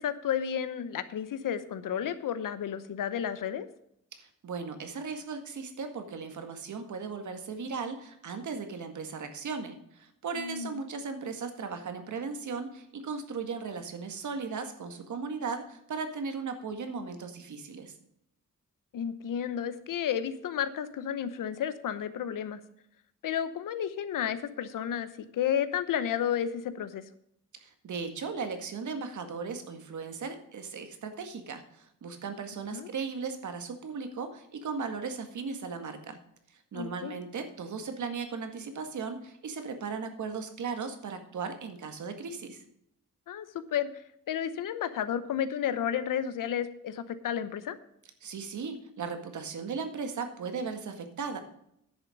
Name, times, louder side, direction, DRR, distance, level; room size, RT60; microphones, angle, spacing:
voice 1, 0.0-3.7 10.3-10.8 18.9-22.6 23.2-27.0 32.7-32.9 36.7-37.2 43.3-44.0 44.3-47.8, left 9 dB, 85° left, 13 dB, 1.0 m, -32 dB
voice 2, 4.1-17.9 27.6-36.2 36.5-42.6 48.2-51.4, right 5 dB, 65° right, 7 dB, 1.9 m, -37 dB
10.5 x 6.8 x 6.4 m, 0.74 s
cardioid pair, 115°, 32 cm